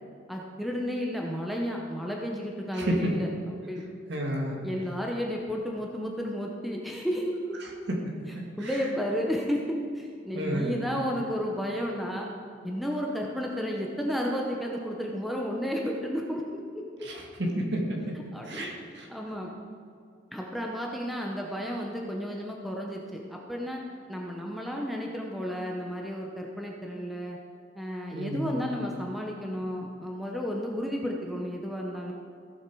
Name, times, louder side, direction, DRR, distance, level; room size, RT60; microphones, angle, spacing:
voice 1, 0.3-3.8 4.6-7.6 8.6-9.7 9.9-12.3 12.6-16.8 18.3-18.7 19.1-19.5 20.3-23.8 24.1-27.4 27.7-32.1, equal, ahead, -1 dB, 0.8 m, -32 dB
voice 2, 2.7-3.1 4.1-4.6 8.0-8.8 10.3-10.8 17.0-18.1 18.5-19.1 28.1-28.7, equal, 55° right, 0 dB, 2.0 m, -31 dB
15.5 x 7.2 x 4.7 m, 2.3 s
head